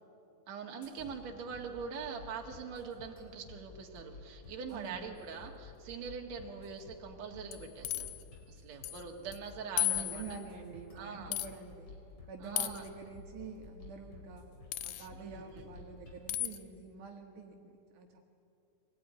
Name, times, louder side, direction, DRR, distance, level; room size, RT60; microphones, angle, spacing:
voice 1, 0.5-8.1 8.5-10.2 10.9-11.3 12.4-12.8 15.1-15.7, right 6 dB, 60° right, 2 dB, 3.1 m, -43 dB
sound 1, 0.8-16.2, left 3 dB, 50° left, 5.2 m, -53 dB
voice 2, 4.7-5.0 9.8-11.9 12.3-14.5 14.8-18.2, right 5 dB, 75° right, 2 dB, 2.9 m, -47 dB
sound 2, 7.5-8.2 8.8-9.0 9.3-9.4 9.8-10.4 11.3-11.5 12.6-12.9 14.7-15.1 16.3-16.6, left 14 dB, 75° left, 2.1 m, -34 dB
24.0 x 18.0 x 9.6 m, 2.5 s
omnidirectional pair, 3.6 m